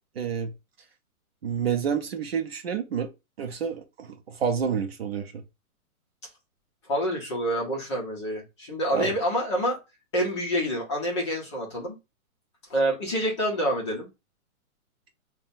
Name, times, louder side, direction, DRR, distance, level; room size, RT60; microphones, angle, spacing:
voice 1, 0.2-0.5 1.4-3.1 3.4-5.4 8.9-9.1, right 7 dB, 45° right, 0.6 m, -29 dB
voice 2, 6.9-9.8 10.1-11.9 12.7-14.1, equal, 20° left, 0.7 m, -27 dB
5.5 x 2.2 x 2.6 m
hypercardioid pair, 165°, 43 cm